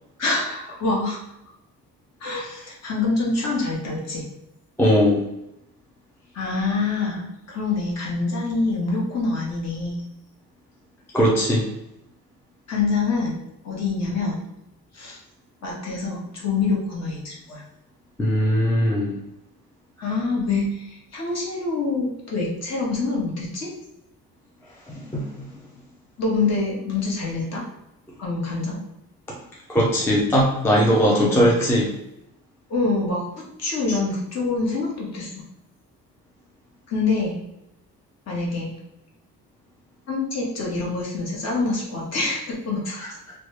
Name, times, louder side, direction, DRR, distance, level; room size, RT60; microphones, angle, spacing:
voice 1, 0.2-1.2 2.2-4.2 6.3-10.0 12.7-14.4 14.9-15.2 15.6-17.6 20.0-23.7 26.2-27.6 28.2-28.8 31.1-31.5 32.7-33.2 33.6-35.3 36.9-37.4 38.3-38.7 40.1-43.0, left 3 dB, 45° left, -3 dB, 1.1 m, -26 dB
voice 2, 4.8-5.2 11.1-11.7 18.2-19.1 25.1-25.5 29.7-31.9 33.9-34.0 43.0-43.1, equal, 5° left, -3 dB, 0.3 m, -19 dB
3.1 x 2.2 x 3.1 m, 0.86 s
cardioid pair, 170°, 35 cm